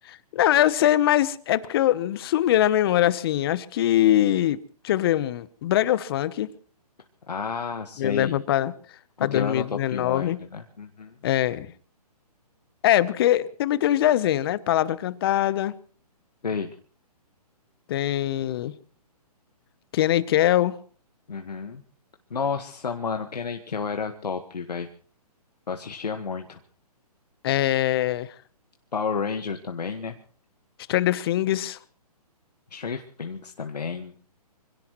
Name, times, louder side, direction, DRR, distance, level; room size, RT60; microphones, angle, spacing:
voice 1, 0.3-4.6 4.8-6.5 8.0-8.7 9.2-10.4 11.2-11.7 12.8-15.7 17.9-18.7 19.9-20.8 27.4-28.3 30.9-31.8, left 12 dB, 35° left, 1.0 m, -22 dB
voice 2, 7.3-8.4 9.2-11.2 16.4-16.7 21.3-21.8 22.3-24.9 25.7-26.6 28.9-30.1 32.7-34.1, left 5 dB, 85° left, 1.6 m, -31 dB
26.0 x 17.5 x 3.1 m
hypercardioid pair, 145°, 20 cm